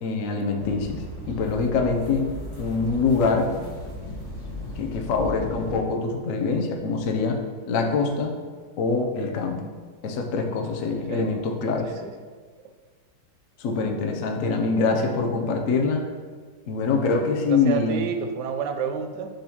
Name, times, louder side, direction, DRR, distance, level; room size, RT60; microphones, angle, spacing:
voice 1, 0.0-2.3 2.6-3.5 4.8-7.4 7.7-8.3 8.8-9.6 10.0-11.9 13.6-16.0 16.7-18.0, left 4 dB, 60° left, 3 dB, 0.9 m, -24 dB
sound 1, 0.6-5.7, left 1 dB, 15° left, 1.0 m, -36 dB
voice 2, 17.5-19.3, right 7 dB, 75° right, 6 dB, 1.1 m, -29 dB
9.9 x 3.9 x 3.0 m, 1.5 s
omnidirectional pair, 1.9 m